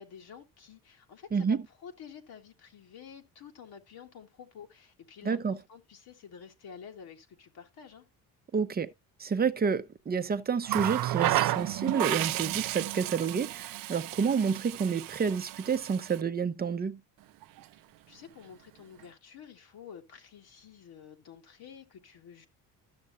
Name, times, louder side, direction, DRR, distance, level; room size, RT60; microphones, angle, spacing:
voice 1, 0.0-8.0 17.6-17.7 18.1-22.5, left 7 dB, 60° left, 1.7 m, -50 dB
voice 2, 5.2-5.6 8.5-8.9 9.2-17.0, right 6 dB, 25° right, 0.7 m, -29 dB
Water tap faucet, 10.6-16.2 17.4-17.6, right 16 dB, 55° right, 0.5 m, -32 dB
12.5 x 6.3 x 2.6 m
supercardioid pair, 80°, 41 cm